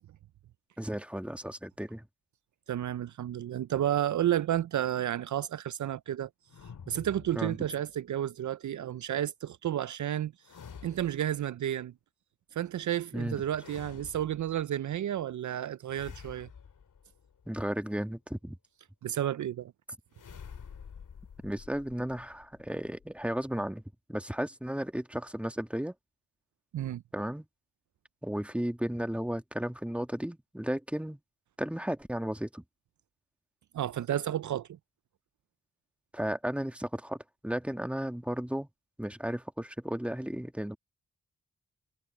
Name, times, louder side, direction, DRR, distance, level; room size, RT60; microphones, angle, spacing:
voice 1, 0.8-2.0 7.3-7.6 13.1-13.4 17.5-18.6 21.4-23.8 24.1-25.9 27.1-27.5 28.2-31.2 31.6-32.6 36.1-38.7 39.0-40.8, equal, 5° right, 1.8 m, -34 dB
voice 2, 2.7-6.3 6.9-10.3 10.8-11.9 12.5-16.5 19.0-19.7 26.7-27.0 33.7-34.8, right 11 dB, 65° right, 0.5 m, -31 dB
sound 1, 6.5-8.0 10.4-11.5 13.5-14.7 15.9-17.7 20.1-23.7, left 7 dB, 75° left, 2.4 m, -50 dB
cardioid pair, 50°, 32 cm